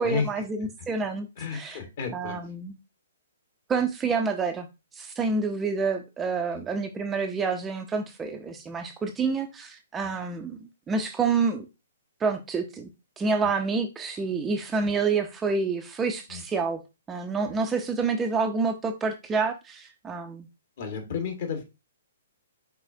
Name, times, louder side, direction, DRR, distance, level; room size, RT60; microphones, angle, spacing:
voice 1, 0.0-1.3 1.5-1.8 2.1-2.7 3.7-4.7 4.9-11.7 12.2-12.9 13.2-16.8 17.1-20.5, right 4 dB, 15° right, 0.5 m, -28 dB
voice 2, 1.4-2.4 6.5-6.6 10.0-10.1 14.8-14.9 16.3-16.4 17.5-17.6 20.8-21.6, left 5 dB, 50° left, 1.5 m, -32 dB
4.7 x 4.0 x 2.6 m
figure-of-eight pair, 120°, 0 cm